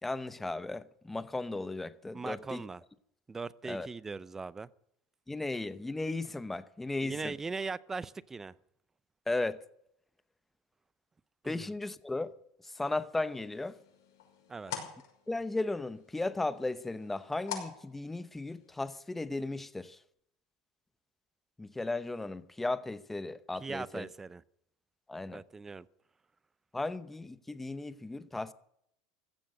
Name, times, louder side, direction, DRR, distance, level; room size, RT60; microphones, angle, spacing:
voice 1, 0.0-2.6 3.6-3.9 5.3-7.3 9.3-9.6 11.4-12.3 12.6-13.8 15.3-20.0 21.6-24.1 25.1-25.4 26.7-28.5, left 2 dB, 10° left, 0.9 m, -35 dB
voice 2, 2.1-2.8 3.3-4.7 7.0-8.5 11.4-11.6 14.5-14.7 23.6-24.4 25.3-25.9, right 4 dB, 15° right, 0.6 m, -39 dB
sound 1, 13.3-18.7, left 9 dB, 80° left, 5.8 m, -46 dB
16.0 x 13.0 x 6.6 m
supercardioid pair, 105°, 2 cm